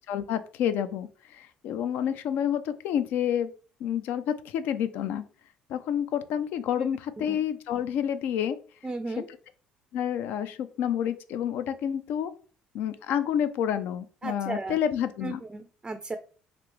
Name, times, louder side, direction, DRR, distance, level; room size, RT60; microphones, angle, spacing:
voice 1, 0.1-3.5 3.8-5.2 5.7-8.6 9.2-9.3 9.9-12.3 12.7-15.4, left 9 dB, 70° left, 11 dB, 0.4 m, -29 dB
voice 2, 8.8-9.3 14.2-14.8 15.2-16.2, right 3 dB, 20° right, 8 dB, 0.4 m, -35 dB
3.3 x 2.5 x 3.1 m, 0.39 s
hypercardioid pair, 60°, 3 cm